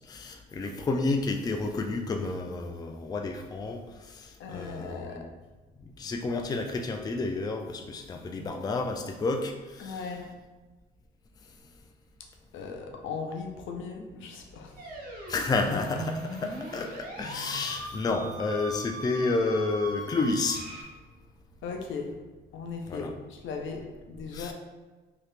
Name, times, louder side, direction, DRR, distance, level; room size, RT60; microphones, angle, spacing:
voice 1, 0.1-5.3 5.8-10.1 15.3-20.6 22.9-23.1 24.3-24.5, left 3 dB, 20° left, 4 dB, 0.3 m, -30 dB
voice 2, 4.4-5.2 9.8-10.3 12.5-14.7 21.6-22.1 22.5-24.5, left 4 dB, 75° left, 2 dB, 0.6 m, -37 dB
sound 1, 14.8-20.8, right 1 dB, 45° right, 1.2 m, -39 dB
2.9 x 2.8 x 3.2 m, 1.3 s
cardioid pair, 90°, 20 cm